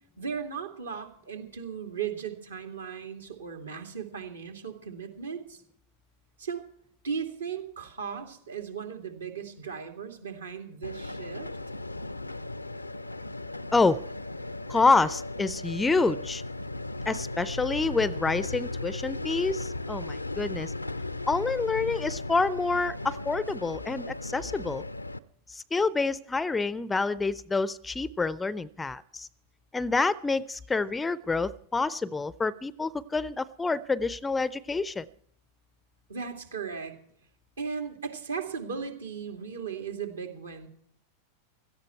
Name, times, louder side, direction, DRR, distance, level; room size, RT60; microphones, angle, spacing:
voice 1, 0.2-5.6 6.4-6.6 7.0-11.5 36.1-37.0 37.6-40.7, right 6 dB, 70° right, 5 dB, 2.6 m, -37 dB
sound 1, 10.8-25.2, left 2 dB, 85° left, 0.5 m, -36 dB
voice 2, 13.7-14.0 14.7-16.4 17.1-20.7 21.3-24.8 25.5-29.3 29.7-35.1, left 3 dB, 10° left, 21 dB, 0.5 m, -27 dB
17.0 x 13.0 x 4.6 m, 0.65 s
figure-of-eight pair, 90°, 0 cm